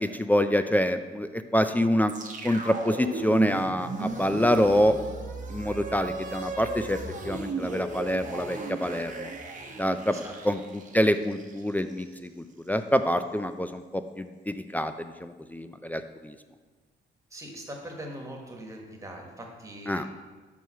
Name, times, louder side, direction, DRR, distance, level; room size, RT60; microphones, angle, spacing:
voice 1, 0.0-2.1 2.4-5.0 5.5-7.0 7.2-9.3 9.8-16.3 19.9-20.1, equal, 10° left, 9 dB, 0.3 m, -26 dB
sound 1, 2.1-12.3, right 3 dB, 40° right, 0.9 m, -36 dB
voice 2, 10.1-10.5 17.3-20.1, right 1 dB, 15° right, 1 dB, 1.4 m, -42 dB
5.4 x 4.8 x 5.6 m, 1.4 s
cardioid pair, 90°, 20 cm